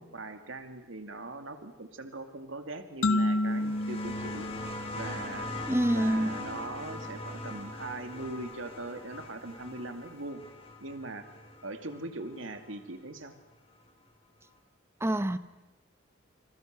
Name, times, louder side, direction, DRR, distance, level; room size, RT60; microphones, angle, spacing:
voice 1, 0.0-4.5 4.9-10.4 10.8-11.3 11.6-13.3, right 2 dB, 75° right, 2.3 m, -41 dB
sound 1, 3.0-5.7, left 1 dB, 80° left, 1.4 m, -30 dB
sound 2, 3.5-12.7 13.9-14.0, left 1 dB, 30° left, 4.4 m, -41 dB
voice 2, 5.7-6.3 15.0-15.4, right 1 dB, 15° right, 0.9 m, -26 dB
28.0 x 27.0 x 6.6 m
head